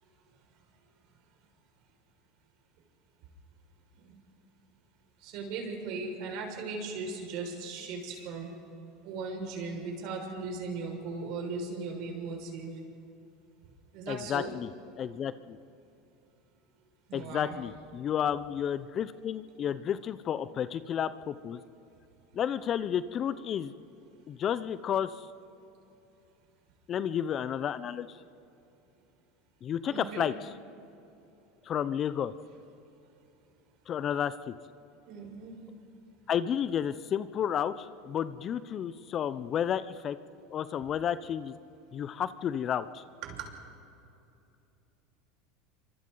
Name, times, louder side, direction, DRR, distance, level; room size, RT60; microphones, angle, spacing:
voice 1, 5.2-8.5 9.0-12.7 13.9-14.5 17.1-17.6 29.9-30.3 35.0-35.6 43.2-43.5, right 4 dB, 60° right, 1 dB, 5.8 m, -38 dB
voice 2, 14.1-14.7 15.0-15.6 17.1-21.6 22.3-23.7 24.3-25.3 26.9-28.2 29.6-30.3 31.7-32.3 33.9-34.5 36.3-40.2 40.5-41.5 41.9-43.0, left 9 dB, 40° left, 14 dB, 0.8 m, -31 dB
27.5 x 25.0 x 4.0 m, 2.8 s
hypercardioid pair, 95°, 0 cm